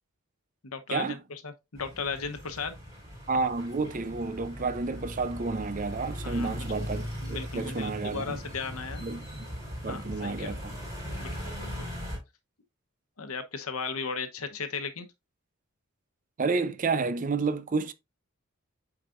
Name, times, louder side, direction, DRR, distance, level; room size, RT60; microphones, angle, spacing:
voice 1, 0.6-2.7 6.2-6.7 7.2-9.0 9.9-10.6 11.2-11.9 13.2-15.1, left 5 dB, 85° left, 1.0 m, -36 dB
sound 1, 1.8-12.2, equal, 15° right, 4.7 m, -39 dB
voice 2, 3.3-8.4 9.0-9.2 9.8-10.7 16.4-17.9, right 4 dB, 35° right, 0.5 m, -30 dB
8.0 x 4.9 x 2.5 m
head